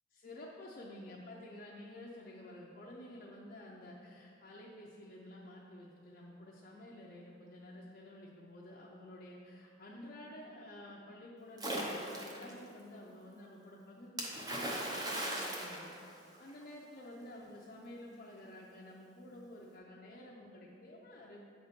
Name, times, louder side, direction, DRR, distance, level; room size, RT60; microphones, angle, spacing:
voice 1, 0.1-15.9 16.4-21.4, left 1 dB, 40° left, -4 dB, 0.6 m, -51 dB
Splash splatter, 11.6-12.5 14.2-16.6, right 1 dB, 20° right, 0.7 m, -38 dB
7.8 x 4.1 x 5.1 m, 2.6 s
head